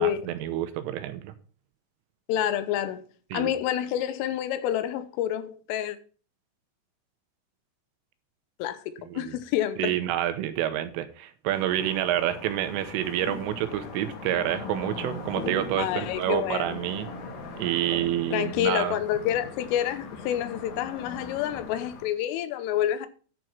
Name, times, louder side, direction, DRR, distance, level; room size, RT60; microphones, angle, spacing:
voice 1, 0.0-1.3 3.3-3.5 9.1-9.4 9.8-17.1 17.6-19.0, right 12 dB, 80° right, 3.5 m, -28 dB
voice 2, 2.3-3.0 3.3-6.0 8.6-9.9 15.8-16.8 18.3-23.1, left 11 dB, 85° left, 3.4 m, -28 dB
sound 1, 11.5-22.1, left 3 dB, 60° left, 3.8 m, -40 dB
10.5 x 6.4 x 6.0 m
omnidirectional pair, 5.8 m